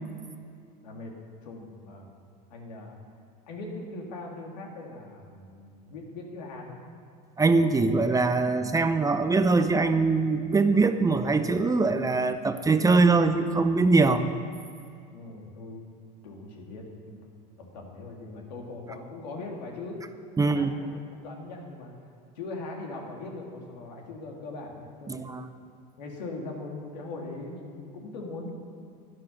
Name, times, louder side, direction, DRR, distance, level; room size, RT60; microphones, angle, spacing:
voice 1, 0.8-1.1 1.4-2.1 2.5-2.9 3.5-6.8 15.1-15.8 16.2-17.2 17.6-20.0 20.4-21.9 22.3-25.4 26.0-28.5, left 2 dB, 85° left, 0 dB, 2.6 m, -40 dB
voice 2, 7.4-14.2 20.4-20.7 25.1-25.4, right 3 dB, 15° right, 9 dB, 0.7 m, -22 dB
11.5 x 11.0 x 5.9 m, 2.3 s
supercardioid pair, 95°, 21 cm